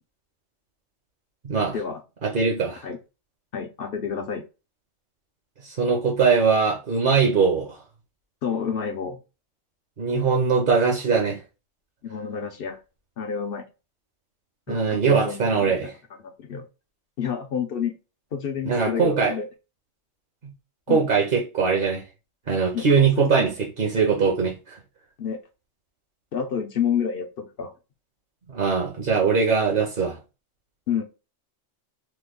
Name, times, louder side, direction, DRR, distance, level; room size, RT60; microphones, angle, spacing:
voice 1, 1.4-1.8 2.2-2.8 5.6-7.8 10.0-11.4 14.7-15.9 18.7-19.3 20.9-22.0 22.5-24.8 28.5-30.2, right 5 dB, 50° right, 0.8 m, -21 dB
voice 2, 3.5-4.4 8.4-9.2 12.0-12.8 13.2-13.7 14.7-15.9 16.2-16.6 17.2-18.0 18.3-19.5 20.9-21.1 22.7-23.5 25.2-25.4 26.3-27.7 30.9-31.0, left 7 dB, 60° left, 0.6 m, -29 dB
3.1 x 2.2 x 3.5 m
omnidirectional pair, 1.3 m